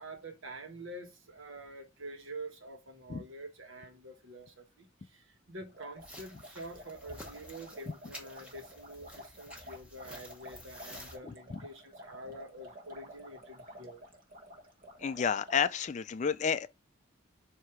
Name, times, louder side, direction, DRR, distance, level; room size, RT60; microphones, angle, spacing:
voice 1, 0.0-14.0, right 1 dB, 70° right, 1.4 m, -47 dB
sound 1, 5.7-15.6, equal, 40° right, 1.2 m, -51 dB
sound 2, 6.0-11.2, equal, 5° right, 1.1 m, -51 dB
voice 2, 15.0-16.7, left 6 dB, 35° left, 0.3 m, -30 dB
7.6 x 2.8 x 4.9 m
head